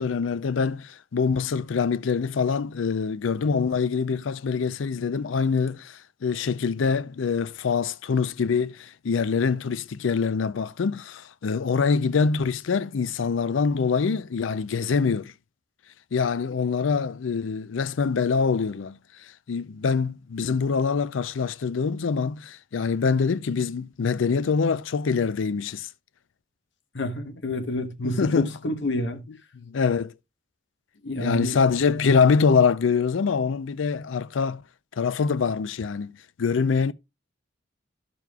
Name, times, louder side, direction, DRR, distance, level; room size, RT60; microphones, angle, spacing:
voice 1, 0.0-15.3 16.1-19.0 19.5-25.9 28.0-28.5 29.3-30.1 31.2-34.6 35.0-36.9, left 5 dB, 90° left, 0.5 m, -24 dB
voice 2, 26.9-29.2 31.0-31.6, left 1 dB, 65° left, 1.1 m, -28 dB
12.0 x 6.9 x 2.3 m
head